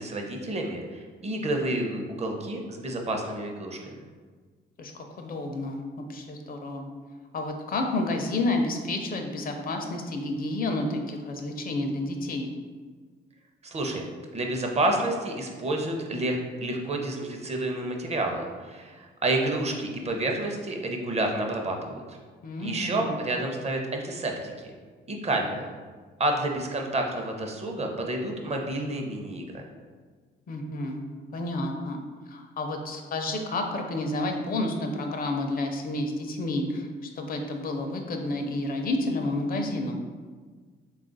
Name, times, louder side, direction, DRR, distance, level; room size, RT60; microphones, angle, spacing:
voice 1, 0.0-4.0 13.6-14.1 14.3-22.2 22.6-24.7 25.1-25.7 26.2-29.6, right 2 dB, 35° right, 2 dB, 0.6 m, -29 dB
voice 2, 4.8-6.8 7.3-12.5 22.4-23.1 30.5-31.0 31.3-32.0 32.3-40.0, left 2 dB, 45° left, 4 dB, 0.5 m, -30 dB
3.5 x 2.4 x 3.9 m, 1.5 s
cardioid pair, 90°, 20 cm